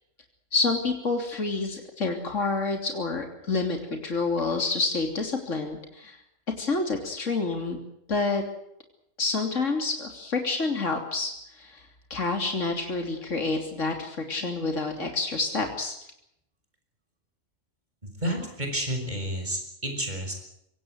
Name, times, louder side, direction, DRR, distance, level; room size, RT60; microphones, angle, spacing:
voice 1, 0.5-6.2 6.6-7.8 8.1-8.4 9.2-15.9, left 3 dB, 70° left, 3 dB, 3.5 m, -28 dB
voice 2, 18.2-20.3, equal, 35° right, 4 dB, 6.7 m, -30 dB
25.0 x 18.0 x 8.0 m, 0.78 s
omnidirectional pair, 1.3 m